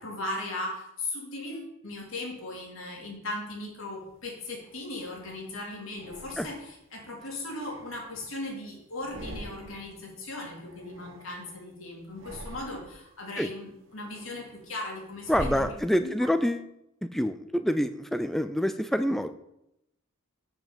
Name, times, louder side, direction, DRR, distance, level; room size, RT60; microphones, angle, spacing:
voice 1, 0.0-15.7 16.0-16.1, left 2 dB, 70° left, -1 dB, 2.8 m, -38 dB
sound 1, 4.0-5.2 5.9-6.9 7.3-8.6 8.9-10.0 10.3-11.7 12.1-13.1 13.6-16.3, right 1 dB, 60° right, 1.0 m, -44 dB
voice 2, 15.3-16.6 17.0-19.3, equal, ahead, 10 dB, 0.3 m, -27 dB
7.0 x 6.0 x 7.1 m, 0.82 s
head